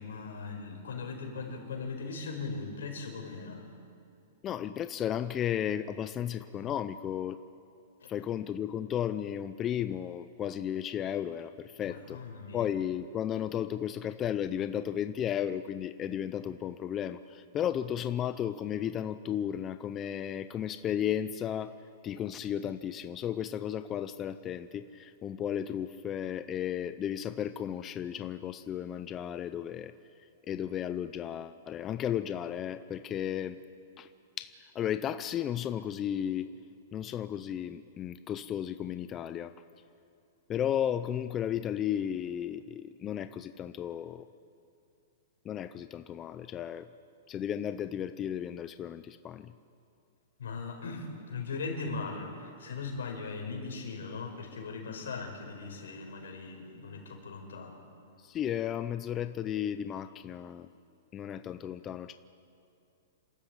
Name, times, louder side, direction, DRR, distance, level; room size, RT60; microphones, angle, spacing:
voice 1, 0.0-3.7 8.0-8.1 11.9-12.6 50.4-57.8, left 4 dB, 90° left, 2 dB, 5.0 m, -39 dB
voice 2, 4.4-7.4 8.1-12.2 12.5-21.7 22.0-29.9 30.5-33.6 34.0-34.1 34.4-36.5 36.9-39.5 40.5-44.3 45.4-46.9 47.3-49.5 58.2-60.7 61.1-62.1, left 10 dB, 20° left, 11 dB, 0.6 m, -34 dB
28.5 x 13.5 x 8.6 m, 2.5 s
hypercardioid pair, 150°, 0 cm